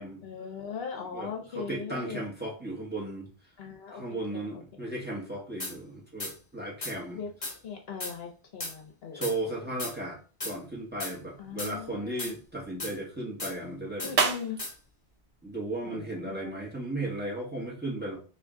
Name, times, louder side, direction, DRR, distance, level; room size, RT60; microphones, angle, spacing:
voice 1, 0.2-2.2 3.6-4.6 7.1-9.7 11.4-12.3 14.0-14.6 15.8-16.5, left 6 dB, 65° left, 3 dB, 0.9 m, -40 dB
voice 2, 1.1-3.3 3.9-7.2 9.1-14.1 15.4-18.2, right 1 dB, 10° right, -4 dB, 1.1 m, -35 dB
sound 1, 5.6-5.7 6.2-6.3 6.8-6.9 7.4-7.6 8.0-8.1 8.6-8.7 9.2-9.3 9.8-9.9 10.4-10.6 11.0-11.1 11.6-11.7 12.2-12.3 12.8-12.9 13.4-13.5 14.0-14.1 14.6-14.7, left 2 dB, 35° left, 1.0 m, -35 dB
sound 2, 10.7-16.5, right 5 dB, 75° right, 1.0 m, -36 dB
3.5 x 2.7 x 3.6 m, 0.36 s
omnidirectional pair, 1.1 m